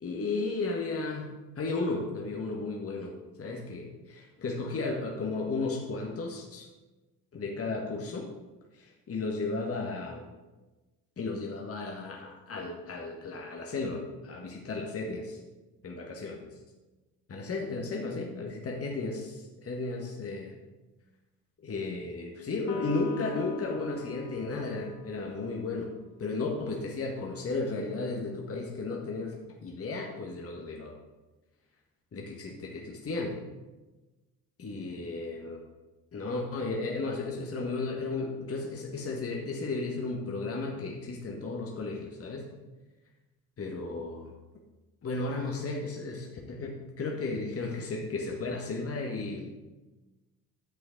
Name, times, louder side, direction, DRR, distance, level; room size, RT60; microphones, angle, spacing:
voice 1, 0.0-6.7 7.3-8.3 8.8-10.2 11.2-15.4 15.8-16.4 17.3-20.6 21.6-25.9 26.2-31.0 32.1-33.4 34.6-35.6 36.1-42.5 43.6-44.3 45.0-49.6, left 3 dB, 30° left, 0 dB, 1.7 m, -34 dB
Electric guitar, 22.7-26.2, left 8 dB, 65° left, 1.2 m, -47 dB
11.0 x 7.9 x 4.0 m, 1.1 s
figure-of-eight pair, 55°, 46 cm